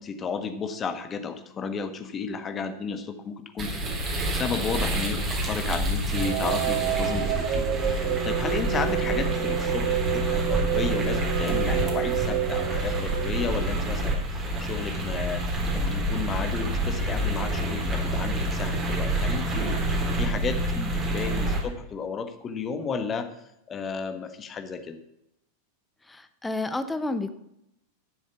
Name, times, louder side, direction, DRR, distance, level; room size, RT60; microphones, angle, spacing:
voice 1, 0.0-3.9 4.3-19.8 20.2-20.6 20.9-23.3 23.7-25.0, left 5 dB, 25° left, 8 dB, 1.4 m, -33 dB
sound 1, 3.6-21.6, right 1 dB, 25° right, 3.8 m, -28 dB
sound 2, 6.1-14.1, right 14 dB, 40° right, 0.9 m, -29 dB
voice 2, 26.0-27.3, left 2 dB, 10° left, 10 dB, 1.0 m, -30 dB
12.0 x 7.2 x 7.3 m, 0.83 s
figure-of-eight pair, 90°, 0 cm